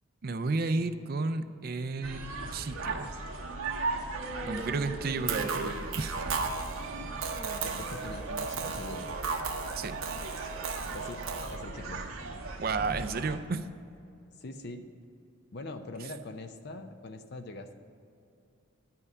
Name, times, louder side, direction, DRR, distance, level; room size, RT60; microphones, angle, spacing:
voice 1, 0.2-3.1 4.5-6.2 9.7-10.0 12.6-13.7, right 3 dB, 45° right, 11 dB, 0.4 m, -32 dB
sound 1, 2.0-13.4, right 3 dB, 90° right, 1.2 m, -38 dB
Human voice, 4.1-6.3 7.2-9.1, equal, 5° left, 0.8 m, -45 dB
sound 2, 5.3-11.6, right 5 dB, 70° right, 0.9 m, -35 dB
voice 2, 7.6-9.1 10.9-11.2 11.5-12.0 14.4-14.9 15.5-17.7, left 2 dB, 50° left, 8 dB, 0.6 m, -42 dB
10.5 x 5.6 x 8.2 m, 2.6 s
head